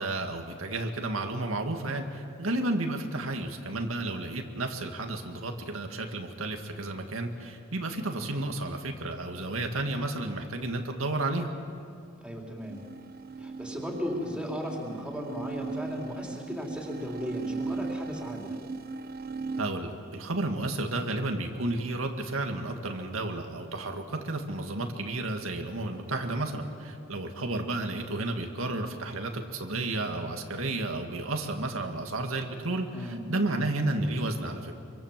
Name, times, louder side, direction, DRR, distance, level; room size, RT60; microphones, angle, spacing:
voice 1, 0.0-11.5 19.6-33.0 33.3-34.7, right 2 dB, 90° right, 4 dB, 2.1 m, -32 dB
voice 2, 12.2-12.8 13.4-18.6 32.9-33.3, equal, 5° right, -1 dB, 3.8 m, -36 dB
sound 1, 12.6-19.6, right 3 dB, 50° right, 0.8 m, -38 dB
26.0 x 24.0 x 7.6 m, 2.4 s
head